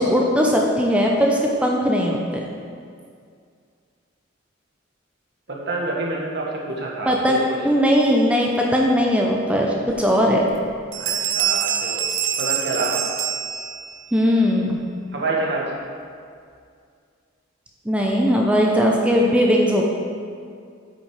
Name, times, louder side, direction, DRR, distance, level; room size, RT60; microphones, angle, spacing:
voice 1, 0.0-2.2 7.1-7.4 7.6-10.4 14.1-14.8 17.9-19.9, equal, 5° right, -1 dB, 0.6 m, -19 dB
voice 2, 5.5-7.7 10.9-12.1 12.4-13.1 15.1-15.8, right 2 dB, 55° right, -3 dB, 1.5 m, -27 dB
sound 1, 9.9-10.0 10.4-10.7 10.9-14.1, right 9 dB, 75° right, 0.8 m, -25 dB
8.5 x 6.1 x 4.9 m, 2.2 s
head